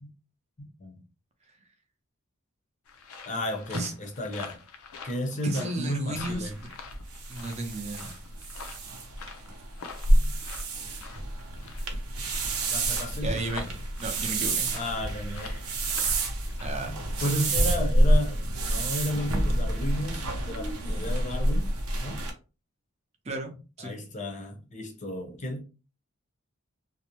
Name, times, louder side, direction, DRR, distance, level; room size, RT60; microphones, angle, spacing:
voice 1, 0.6-1.0 3.3-4.6 5.0-6.6 10.1-10.3 11.6-11.7 12.7-13.4 14.7-15.8 16.7-21.7 22.0-22.2 23.8-25.6, left 1 dB, 35° left, 0.6 m, -33 dB
sound 1, 2.9-17.5, left 5 dB, 75° left, 0.5 m, -46 dB
voice 2, 5.4-6.7 7.3-8.2 13.2-13.7 14.0-14.7 16.6-17.3 23.2-23.9, right 2 dB, 30° right, 0.5 m, -34 dB
sound 2, 6.2-22.3, right 1 dB, 85° right, 0.7 m, -28 dB
2.6 x 2.0 x 2.9 m
head